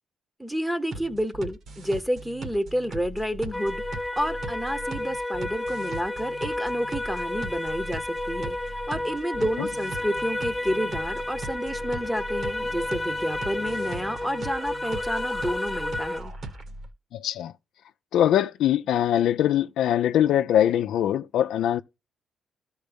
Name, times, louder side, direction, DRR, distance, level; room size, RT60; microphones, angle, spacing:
voice 1, 0.4-3.8 4.1-16.3, equal, 5° right, 0.9 m, -30 dB
sound 1, 0.9-16.9, right 2 dB, 60° right, 1.8 m, -39 dB
sound 2, 3.5-16.2, left 1 dB, 10° left, 0.6 m, -31 dB
voice 2, 17.1-17.5 18.1-21.8, left 11 dB, 80° left, 0.5 m, -22 dB
13.0 x 4.6 x 3.4 m
cardioid pair, 90°, 0 cm